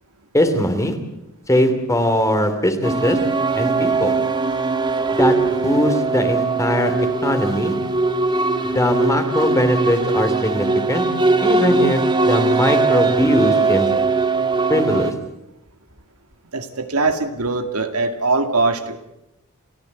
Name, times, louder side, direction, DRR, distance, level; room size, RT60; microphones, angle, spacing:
voice 1, 0.3-1.0 1.5-3.2 3.5-4.1 5.1-7.8 8.6-11.0 11.4-13.9 14.7-15.1, equal, 15° left, 8 dB, 2.9 m, -20 dB
sound 1, 2.8-15.1, right 3 dB, 20° right, 1.5 m, -20 dB
voice 2, 16.5-19.1, right 3 dB, 85° right, 7 dB, 2.2 m, -21 dB
30.0 x 15.0 x 8.1 m, 0.89 s
head